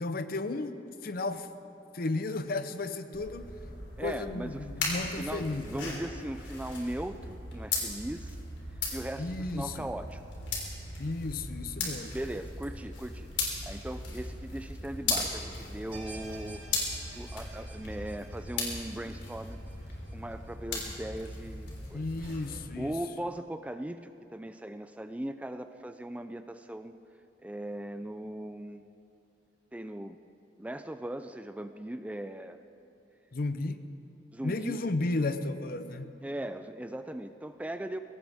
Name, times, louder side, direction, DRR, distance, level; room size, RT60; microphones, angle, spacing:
voice 1, 0.0-1.5 1.9-3.5 4.0-6.0 9.2-9.9 11.0-12.1 21.9-22.9 33.3-33.8 34.4-36.1, left 2 dB, 50° left, 10 dB, 0.7 m, -34 dB
sound 1, 3.1-22.6, left 3 dB, 80° left, 3.6 m, -38 dB
voice 2, 4.0-4.9 5.2-8.4 8.7-10.2 12.0-13.3 13.7-16.6 17.0-19.6 20.1-22.1 22.8-26.9 27.4-28.8 29.7-30.2 30.6-32.6 34.3-34.8 36.2-38.0, right 1 dB, 10° right, 9 dB, 0.3 m, -39 dB
sound 2, 15.9-21.1 21.5-21.6 22.2-22.3, right 2 dB, 30° right, 4.6 m, -51 dB
22.0 x 17.5 x 3.6 m, 2.7 s
head